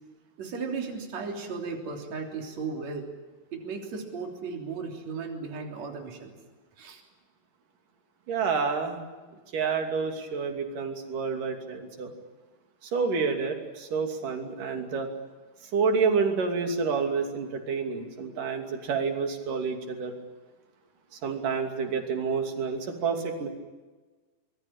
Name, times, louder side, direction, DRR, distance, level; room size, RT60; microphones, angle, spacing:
voice 1, 0.4-3.1 3.5-6.3 6.8-7.0, right 4 dB, 55° right, 2 dB, 4.5 m, -35 dB
voice 2, 8.3-9.0 9.5-12.1 12.8-15.1 15.7-20.1 21.1-23.5, right 5 dB, 75° right, 5 dB, 4.4 m, -29 dB
25.0 x 21.5 x 8.9 m, 1.3 s
omnidirectional pair, 3.8 m